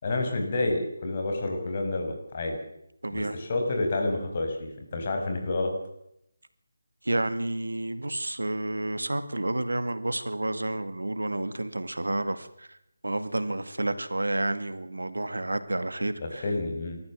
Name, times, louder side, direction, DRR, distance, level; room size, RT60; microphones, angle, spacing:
voice 1, 0.0-2.6 3.1-5.7 16.2-17.0, left 2 dB, 40° left, 3 dB, 6.0 m, -29 dB
voice 2, 3.0-3.4 7.0-12.8 13.0-16.4, right 2 dB, 90° right, 11 dB, 2.1 m, -30 dB
27.5 x 14.0 x 7.5 m, 0.78 s
figure-of-eight pair, 160°, 0 cm